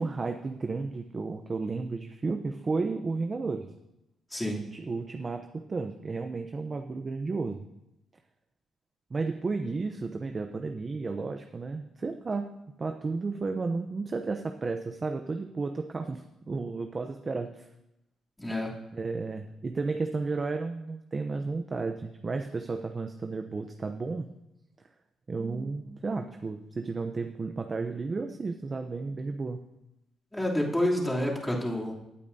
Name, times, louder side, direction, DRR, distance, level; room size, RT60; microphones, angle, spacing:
voice 1, 0.0-3.7 4.7-7.6 9.1-17.7 18.9-24.3 25.3-29.6, right 3 dB, 35° right, 6 dB, 0.7 m, -33 dB
voice 2, 4.3-4.6 18.4-18.7 30.3-31.9, left 1 dB, 10° left, -4 dB, 3.0 m, -28 dB
17.0 x 8.6 x 2.7 m, 0.89 s
cardioid pair, 90°, 0 cm